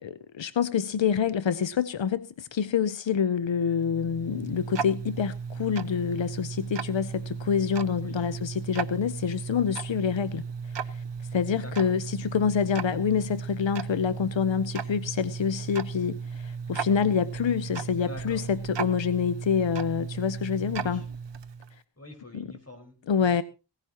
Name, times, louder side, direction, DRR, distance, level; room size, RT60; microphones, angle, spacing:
voice 1, 0.0-10.4 10.8-11.0 11.3-21.0 22.3-22.5 23.1-23.4, left 7 dB, 90° left, 0.6 m, -27 dB
Tick-tock, 3.5-21.8, right 6 dB, 75° right, 0.7 m, -35 dB
voice 2, 11.6-11.9 18.0-18.4 20.7-21.0 22.0-23.4, left 2 dB, 35° left, 4.8 m, -46 dB
17.5 x 15.0 x 2.9 m
wide cardioid pair, 50°, 43 cm